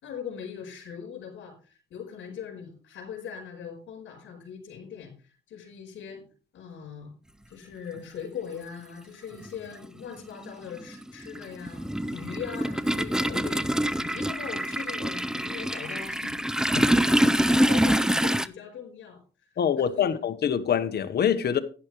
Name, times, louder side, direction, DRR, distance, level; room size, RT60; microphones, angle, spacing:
voice 1, 0.0-6.3 6.5-7.1 7.5-11.8 12.1-13.7 14.0-16.5 17.0-19.2 19.8-20.1, left 7 dB, 70° left, 4.9 m, -40 dB
Toilet flush, 8.0-8.1 9.3-9.5 9.8-18.5, equal, 5° right, 0.5 m, -25 dB
voice 2, 19.6-21.6, left 8 dB, 55° left, 1.3 m, -25 dB
12.0 x 10.5 x 3.2 m
cardioid pair, 90°, 20 cm